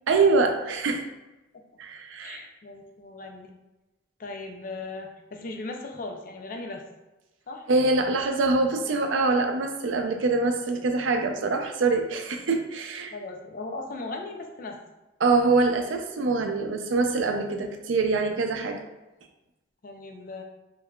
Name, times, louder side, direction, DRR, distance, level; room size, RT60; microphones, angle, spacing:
voice 1, 0.1-1.0 1.8-2.4 7.7-13.1 15.2-18.8, right 3 dB, 80° right, 5 dB, 0.4 m, -24 dB
voice 2, 2.2-3.5 4.2-6.8 7.5-7.6 13.1-14.8 19.8-20.4, left 2 dB, 45° left, 3 dB, 0.4 m, -38 dB
3.6 x 3.1 x 2.3 m, 1.0 s
head